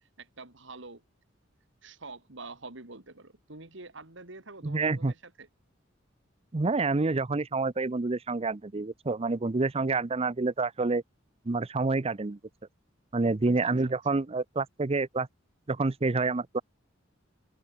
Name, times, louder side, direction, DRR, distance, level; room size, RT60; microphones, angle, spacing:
voice 1, 0.2-1.0 1.8-5.5 13.4-13.9, right 3 dB, 65° right, 3.1 m, -46 dB
voice 2, 4.6-5.1 6.5-11.0 11.5-12.4 13.1-15.3 15.7-16.6, right 3 dB, 30° right, 0.6 m, -28 dB
open air
head